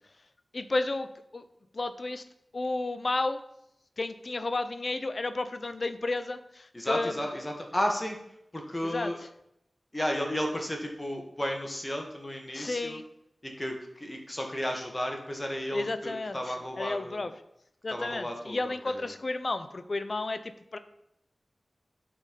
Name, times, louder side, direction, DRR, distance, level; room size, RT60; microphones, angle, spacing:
voice 1, 0.5-1.1 1.3-1.4 1.7-2.2 2.5-3.4 4.0-7.2 8.8-9.1 12.5-13.0 15.7-17.3 17.8-20.8, left 2 dB, 55° left, 11 dB, 0.6 m, -32 dB
voice 2, 6.7-8.2 8.5-9.2 9.9-13.0 13.4-17.2 17.9-19.1, equal, 25° left, 2 dB, 1.6 m, -33 dB
8.2 x 4.4 x 5.3 m, 0.78 s
wide cardioid pair, 55°, 0 cm